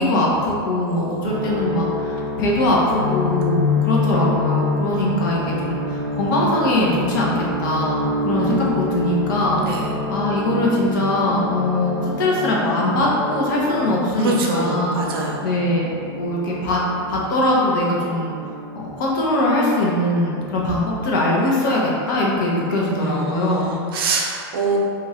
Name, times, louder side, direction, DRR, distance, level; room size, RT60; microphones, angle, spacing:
voice 1, 0.0-9.8 10.1-16.8 17.1-18.4 18.7-23.7, left 1 dB, 50° left, -4 dB, 0.8 m, -21 dB
voice 2, 0.8-1.4 8.4-8.6 9.6-9.9 14.2-15.5 23.0-24.8, right 3 dB, 65° right, -1 dB, 0.6 m, -25 dB
sound 1, 1.2-19.7 20.0-21.0, left 2 dB, 25° right, 0.5 m, -27 dB
3.0 x 2.5 x 4.1 m, 2.4 s
supercardioid pair, 170°, 13 cm